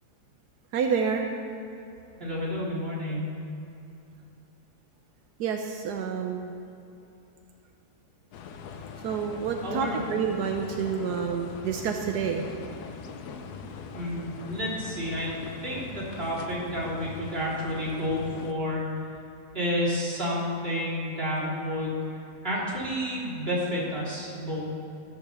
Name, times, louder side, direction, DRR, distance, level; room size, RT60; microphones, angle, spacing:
voice 1, 0.7-1.3 5.4-6.5 9.0-12.4, right 6 dB, 85° right, 3 dB, 1.3 m, -28 dB
voice 2, 2.2-3.3 9.6-10.0 13.9-15.3 15.6-19.0 19.5-22.0 22.4-24.7, equal, 35° right, -6 dB, 3.1 m, -30 dB
sound 1, 8.3-18.5, left 5 dB, 80° left, 1.3 m, -41 dB
14.0 x 5.9 x 6.8 m, 2.7 s
omnidirectional pair, 1.7 m